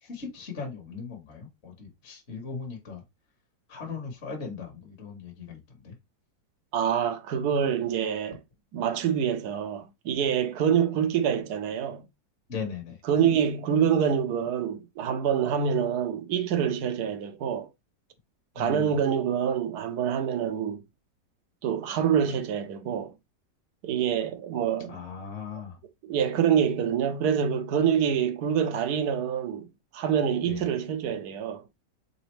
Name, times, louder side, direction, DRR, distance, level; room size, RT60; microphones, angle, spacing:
voice 1, 0.0-3.0 3.7-5.9 12.5-13.0 18.5-19.0 24.8-25.8 30.4-30.6, left 5 dB, 45° left, 1.3 m, -38 dB
voice 2, 6.7-8.4 8.7-12.0 13.1-17.7 18.6-20.8 21.6-23.1 23.8-25.0 26.0-29.7 29.9-31.7, right 8 dB, 70° right, 1.2 m, -26 dB
4.2 x 3.8 x 3.1 m
omnidirectional pair, 1.9 m